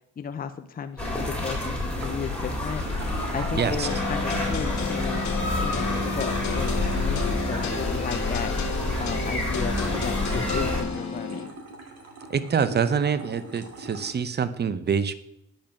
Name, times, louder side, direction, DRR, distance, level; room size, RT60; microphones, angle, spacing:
voice 1, 0.2-5.3 5.6-8.5 9.0-11.5, left 6 dB, 30° left, 8 dB, 0.6 m, -34 dB
sound 1, 1.0-10.8, left 2 dB, 5° left, 3.2 m, -28 dB
sound 2, 1.8-14.1, right 3 dB, 55° right, 2.4 m, -44 dB
voice 2, 3.5-3.9 12.3-15.1, right 6 dB, 35° right, 13 dB, 0.8 m, -25 dB
sound 3, 3.8-11.4, left 4 dB, 70° left, 2.0 m, -31 dB
8.8 x 5.4 x 7.0 m, 0.83 s
cardioid pair, 90°, 30 cm